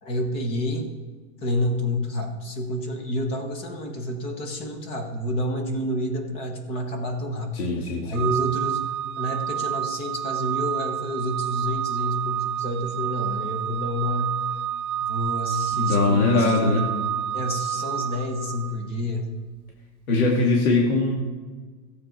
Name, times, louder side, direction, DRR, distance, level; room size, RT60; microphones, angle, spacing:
voice 1, 0.0-0.9 1.4-7.5 8.0-8.8 9.2-14.4 15.1-16.9 17.3-19.3, left 1 dB, 15° left, 4 dB, 0.8 m, -28 dB
voice 2, 7.5-8.3 15.8-16.8 20.1-21.1, left 3 dB, 65° left, -2 dB, 2.5 m, -21 dB
Organ, 8.1-18.9, right 10 dB, 70° right, 0.6 m, -29 dB
15.5 x 8.5 x 4.5 m, 1.4 s
supercardioid pair, 175°, 45 cm